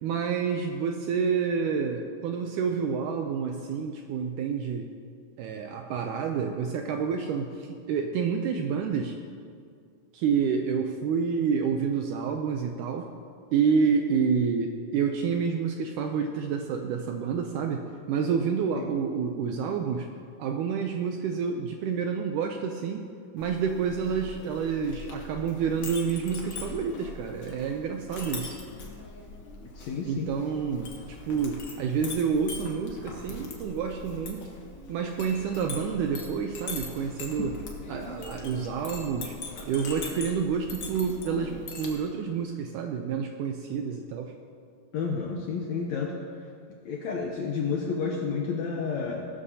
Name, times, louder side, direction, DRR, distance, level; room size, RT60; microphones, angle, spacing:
voice 1, 0.0-4.9 5.4-9.2 10.1-13.1 13.5-20.1 20.4-23.1 23.3-28.6 30.1-34.5 34.9-37.6 37.9-39.3 39.7-44.3, right 6 dB, 80° right, 4 dB, 1.9 m, -28 dB
Chink clink, 23.4-41.9, left 3 dB, 55° left, 1.4 m, -41 dB
voice 2, 29.8-30.3 44.9-46.1 46.8-49.3, left 5 dB, 75° left, 0 dB, 1.7 m, -30 dB
17.5 x 12.5 x 2.8 m, 2.2 s
omnidirectional pair, 4.1 m